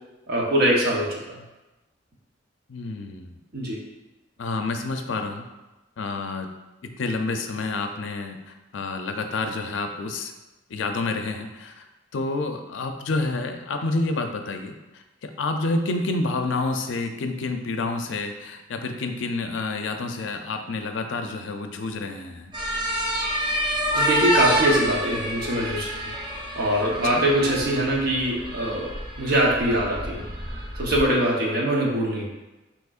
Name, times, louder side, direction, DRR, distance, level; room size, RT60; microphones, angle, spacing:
voice 1, 0.3-1.2 3.5-3.8 23.9-26.0 26.6-30.2 30.7-32.2, right 1 dB, 55° right, -3 dB, 0.8 m, -23 dB
voice 2, 2.7-3.4 4.4-5.4 6.0-6.5 6.8-10.3 10.7-11.8 12.1-22.5 27.1-27.2, left 3 dB, 75° left, 6 dB, 0.4 m, -29 dB
sound 1, 22.5-31.0, right 1 dB, 25° right, 0.6 m, -28 dB
6.2 x 3.0 x 2.4 m, 1.1 s
head